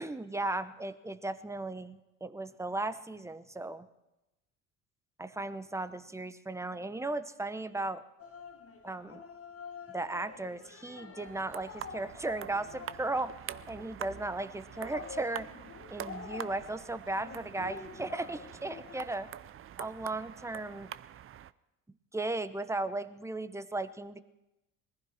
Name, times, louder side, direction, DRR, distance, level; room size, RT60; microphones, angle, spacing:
voice 1, 0.0-3.8 5.2-8.0 8.8-9.2 9.9-13.3 13.7-15.5 15.9-19.3 19.8-20.9 22.1-24.2, right 2 dB, 5° right, 12 dB, 0.9 m, -36 dB
sound 1, 8.2-19.1, left 6 dB, 35° left, 1.6 m, -48 dB
sound 2, 11.2-21.5, right 10 dB, 35° right, 0.5 m, -46 dB
20.5 x 15.0 x 4.4 m, 0.95 s
hypercardioid pair, 75°, 39 cm